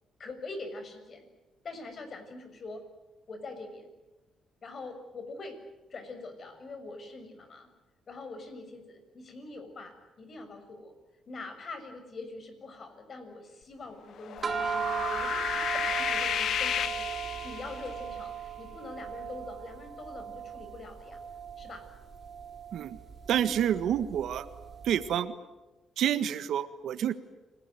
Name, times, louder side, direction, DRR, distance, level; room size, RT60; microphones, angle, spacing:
voice 1, 0.2-1.3 1.6-2.8 3.3-3.9 4.6-5.6 5.9-7.7 8.1-10.9 11.3-21.2 21.6-21.8 23.4-23.7, left 3 dB, 45° left, 8 dB, 6.8 m, -44 dB
sound 1, 14.2-17.9, left 9 dB, 70° left, 1.3 m, -32 dB
sound 2, 14.4-24.9, right 7 dB, 40° right, 5.5 m, -37 dB
voice 2, 23.3-24.5 24.8-25.3 26.0-27.1, right 10 dB, 75° right, 12 dB, 1.6 m, -28 dB
29.0 x 20.0 x 9.4 m, 1.1 s
cardioid pair, 90°, 0 cm